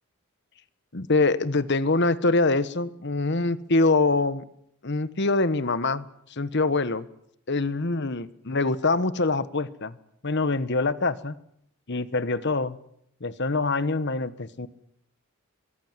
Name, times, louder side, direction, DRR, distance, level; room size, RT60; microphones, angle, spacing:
voice 1, 0.9-4.4 4.8-6.0 6.3-7.1 7.5-10.0 10.2-11.4 11.9-12.8 13.2-14.7, left 3 dB, 55° left, 15 dB, 1.2 m, -24 dB
23.5 x 22.5 x 7.5 m, 0.71 s
head